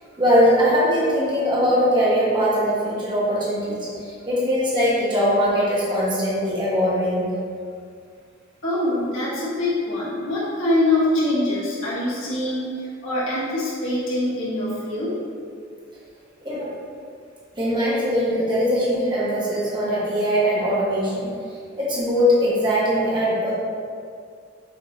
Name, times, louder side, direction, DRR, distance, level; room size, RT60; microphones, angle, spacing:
voice 1, 0.2-7.3 16.4-16.7 17.5-21.3 21.8-23.5, equal, 25° right, -8 dB, 1.1 m, -21 dB
voice 2, 8.6-15.1, left 1 dB, 80° left, -9 dB, 1.4 m, -24 dB
6.5 x 2.8 x 2.7 m, 2.2 s
head